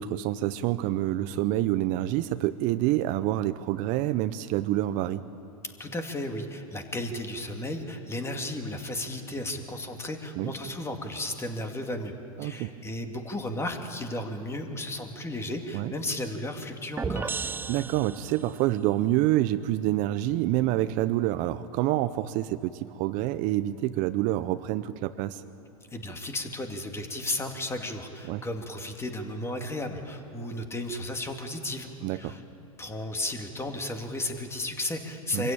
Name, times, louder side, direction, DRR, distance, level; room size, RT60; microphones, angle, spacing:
voice 1, 0.0-5.2 10.4-10.5 12.4-12.7 15.7-15.9 17.7-25.4 28.3-28.4 32.0-32.4 35.3-35.5, right 14 dB, 45° right, 12 dB, 0.8 m, -27 dB
voice 2, 5.8-12.1 12.4-17.3 25.9-32.4 32.8-35.5, left 1 dB, 15° left, 4 dB, 2.4 m, -34 dB
sound 1, 17.0-18.7, right 5 dB, 10° right, 0.5 m, -34 dB
25.0 x 15.5 x 8.8 m, 2.9 s
hypercardioid pair, 105°, 18 cm